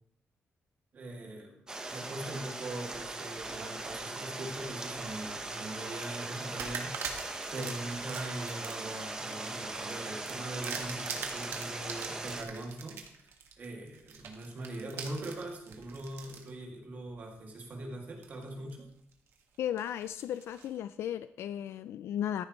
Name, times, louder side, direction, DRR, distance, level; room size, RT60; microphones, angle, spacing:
voice 1, 0.9-1.6 1.9-13.0 13.6-18.9, right 2 dB, 40° right, 1 dB, 2.3 m, -41 dB
Stream, 1.7-12.4, right 2 dB, 15° right, 1.1 m, -40 dB
sound 1, 2.9-4.0 4.5-5.4 5.9-6.0 6.6-16.5 17.1-17.2 18.2-18.7 19.1-20.8, right 6 dB, 65° right, 1.7 m, -44 dB
voice 2, 19.6-22.5, left 10 dB, 70° left, 13 dB, 0.3 m, -35 dB
14.0 x 10.5 x 3.1 m, 0.70 s
cardioid pair, 180°, 4 cm